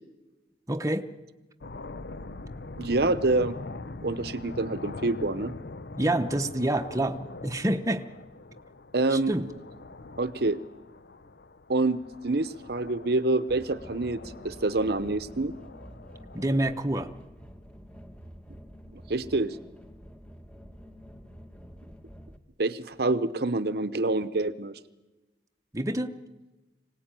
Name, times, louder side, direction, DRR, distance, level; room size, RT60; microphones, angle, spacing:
voice 1, 0.7-1.1 6.0-8.1 9.1-9.5 16.3-17.1 25.7-26.1, right 1 dB, 20° right, 6 dB, 0.9 m, -27 dB
sound 1, 1.6-16.9, left 3 dB, 65° left, 0.7 m, -43 dB
voice 2, 2.8-3.6 4.0-5.5 8.9-9.3 10.2-10.6 11.7-15.5 18.9-19.6 22.6-24.8, right 2 dB, 60° right, 13 dB, 0.9 m, -27 dB
sound 2, 13.5-22.4, equal, 5° left, 1.4 m, -48 dB
25.0 x 18.0 x 9.1 m, 1.1 s
head